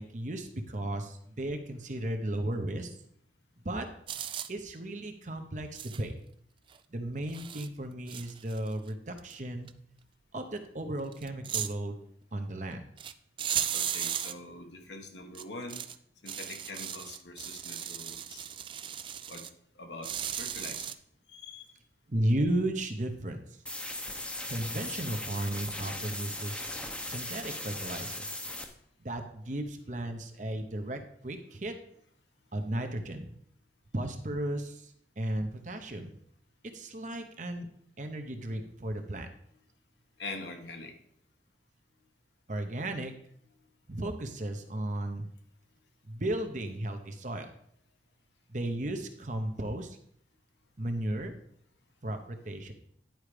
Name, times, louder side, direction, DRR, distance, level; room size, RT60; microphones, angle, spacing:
voice 1, 0.0-2.9 3.6-3.9 4.5-6.1 6.9-9.7 10.3-12.0 12.3-12.9 22.1-23.4 24.5-26.7 27.1-28.3 29.0-31.7 32.5-33.4 33.9-36.1 36.7-37.7 38.0-39.3 42.5-43.1 43.9-45.3 46.0-47.5 48.5-50.0 50.8-51.4 52.0-52.7, right 1 dB, 45° right, 6 dB, 0.9 m, -34 dB
sound 1, 4.1-4.5 5.7-6.0 6.7-6.8 7.3-7.7 8.1-8.9 9.2-9.3 9.7-9.8 11.1-11.7 13.0-13.1 13.4-14.3 15.3-15.9 16.3-19.5 20.0-20.9, right 9 dB, 30° right, 0.3 m, -36 dB
voice 2, 13.7-15.8 16.2-18.5 19.3-19.4 19.7-20.1 20.4-20.9 21.3-21.7 40.2-40.9, left 2 dB, 80° left, 3 dB, 1.5 m, -44 dB
sound 2, 23.7-28.7, left 1 dB, 5° left, 0.8 m, -38 dB
10.5 x 4.8 x 5.0 m, 0.68 s
head